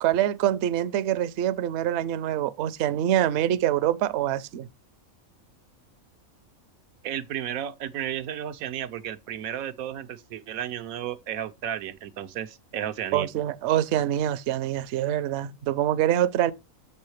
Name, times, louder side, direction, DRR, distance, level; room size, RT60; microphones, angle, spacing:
voice 1, 0.0-4.7 13.1-16.5, right 12 dB, 65° right, 0.8 m, -25 dB
voice 2, 7.0-13.3, right 10 dB, 90° right, 1.1 m, -33 dB
7.0 x 5.6 x 3.1 m
omnidirectional pair, 1.4 m